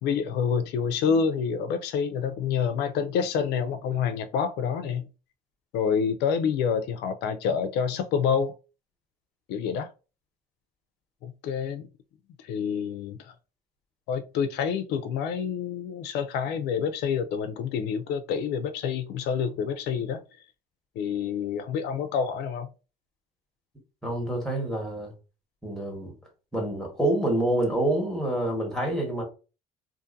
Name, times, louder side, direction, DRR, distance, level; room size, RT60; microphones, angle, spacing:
voice 1, 0.0-5.1 5.7-8.5 9.5-9.9 11.2-11.9 12.4-13.3 14.1-20.2 21.0-22.7, left 6 dB, 85° left, 0.4 m, -27 dB
voice 2, 24.0-25.1 25.6-26.1 26.5-29.2, right 1 dB, 5° left, 1.2 m, -27 dB
2.6 x 2.5 x 2.5 m
cardioid pair, 110°, 17 cm